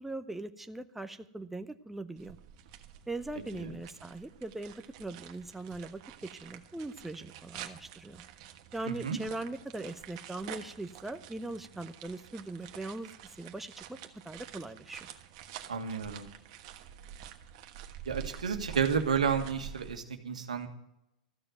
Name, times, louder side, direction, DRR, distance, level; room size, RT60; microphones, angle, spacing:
voice 1, 0.0-2.4 3.1-4.7 5.0-6.0 6.3-8.2 8.7-14.0 14.2-15.1, right 2 dB, 5° right, 9 dB, 0.8 m, -40 dB
sound 1, 2.2-20.0, right 10 dB, 55° right, 1.4 m, -48 dB
voice 2, 8.9-9.2 15.7-16.3 18.1-20.7, right 6 dB, 85° right, 5 dB, 1.6 m, -31 dB
14.0 x 6.9 x 9.1 m, 0.82 s
hypercardioid pair, 100°, 4 cm